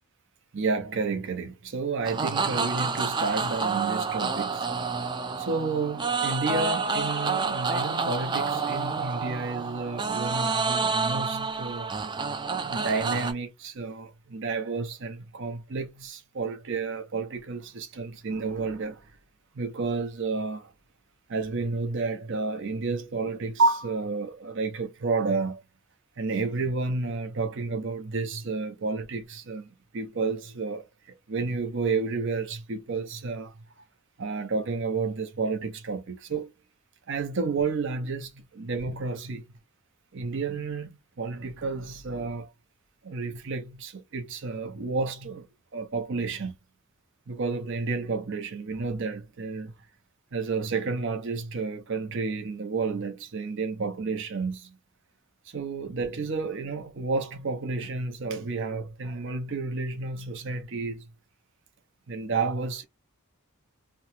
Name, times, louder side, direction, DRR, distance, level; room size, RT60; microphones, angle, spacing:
voice 1, 0.5-4.7 5.4-12.0 12.7-19.1 19.5-20.7 21.3-25.6 26.2-33.6 34.2-36.5 37.1-39.6 40.1-42.5 43.0-45.5 45.7-46.6 47.3-49.7 50.3-54.8 55.5-61.0 62.1-62.9, right 4 dB, 55° right, 0.6 m, -31 dB
sound 1, 2.0-13.3, right 4 dB, 20° right, 0.3 m, -29 dB
2.9 x 2.1 x 2.9 m
head